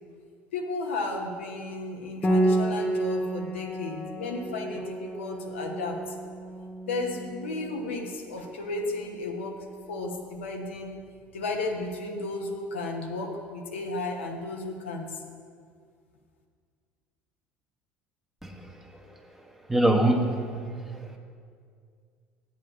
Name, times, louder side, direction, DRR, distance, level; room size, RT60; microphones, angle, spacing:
voice 1, 0.5-6.2 6.9-9.5 9.9-11.0 11.3-15.2, left 2 dB, 85° left, 1 dB, 1.0 m, -33 dB
Piano, 2.2-11.6, right 1 dB, 20° left, 1.1 m, -32 dB
voice 2, 19.7-20.5 20.9-21.2, right 1 dB, 5° right, 1 dB, 1.3 m, -23 dB
8.4 x 7.6 x 5.5 m, 2.2 s
hypercardioid pair, 70°, 6 cm